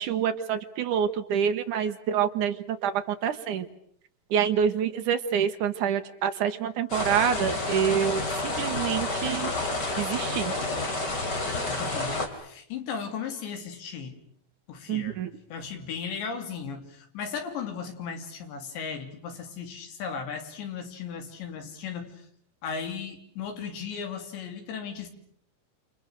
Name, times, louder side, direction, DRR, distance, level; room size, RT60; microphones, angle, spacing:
voice 1, 0.0-2.5 2.8-3.7 4.3-9.5 10.0-10.5 14.9-15.3, right 8 dB, 65° right, 7 dB, 2.1 m, -27 dB
sound 1, 6.9-12.3, left 2 dB, 25° left, 3.2 m, -29 dB
voice 2, 11.7-14.2 14.7-15.2 15.5-22.3 22.6-25.1, left 6 dB, 80° left, 5 dB, 5.3 m, -36 dB
29.5 x 28.0 x 6.5 m, 0.66 s
omnidirectional pair, 5.1 m